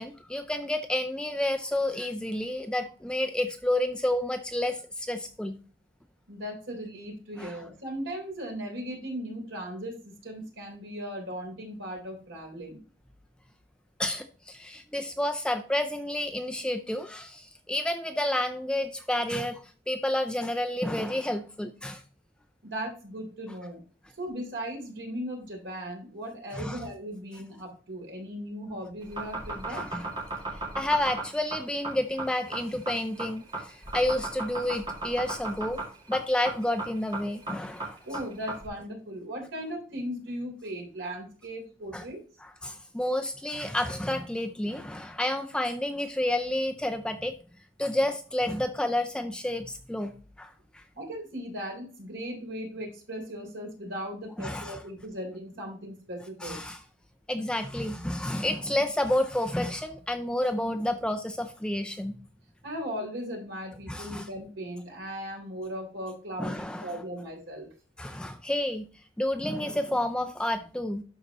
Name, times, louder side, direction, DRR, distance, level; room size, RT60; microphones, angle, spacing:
voice 1, 0.0-5.6 7.4-7.5 14.0-22.0 26.5-26.8 29.7-30.1 30.7-35.8 36.1-38.0 41.9-42.1 42.4-47.3 47.8-50.1 50.4-50.8 54.4-54.8 56.4-56.8 57.3-62.2 63.9-64.3 66.4-66.9 68.0-68.9 69.2-71.0, left 1 dB, 5° left, 6 dB, 0.4 m, -30 dB
voice 2, 6.3-12.8 22.6-23.8 24.2-29.8 38.0-42.2 51.0-56.6 62.6-67.7, equal, 70° right, 0 dB, 3.3 m, -37 dB
sound 1, 29.0-38.7, right 2 dB, 25° right, 2.2 m, -35 dB
12.0 x 4.2 x 2.9 m, 0.38 s
head